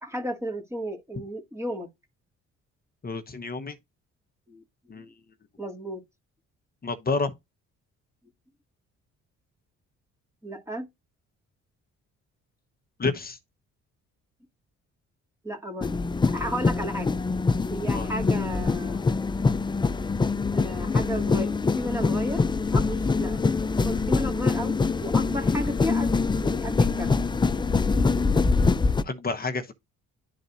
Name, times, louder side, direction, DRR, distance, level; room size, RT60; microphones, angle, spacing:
voice 1, 0.0-1.9 4.5-4.6 4.9-5.0 5.6-6.0 10.4-10.9 15.4-15.9 16.3-17.2 17.7-19.2 20.5-22.4 22.7-23.5 23.8-26.1 26.4-27.1, equal, 10° right, 2.1 m, -33 dB
voice 2, 3.0-3.8 4.9-5.1 6.8-7.3 13.0-13.4 17.9-18.1 29.0-29.7, left 3 dB, 30° left, 1.1 m, -29 dB
sound 1, 15.8-29.0, left 4 dB, 15° left, 0.4 m, -24 dB
11.5 x 4.0 x 2.6 m
cardioid pair, 90°, 30 cm